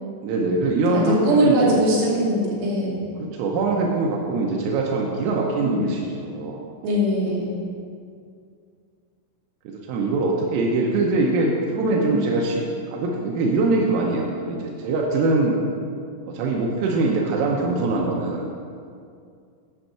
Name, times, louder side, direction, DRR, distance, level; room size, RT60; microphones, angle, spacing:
voice 1, 0.2-1.8 3.2-6.6 9.7-15.6 16.3-18.5, right 3 dB, 90° right, -1 dB, 3.5 m, -23 dB
voice 2, 0.9-3.0 5.5-5.9 6.8-7.6 11.9-12.2, equal, 65° right, -6 dB, 4.4 m, -22 dB
9.6 x 5.5 x 7.5 m, 2.3 s
omnidirectional pair, 5.6 m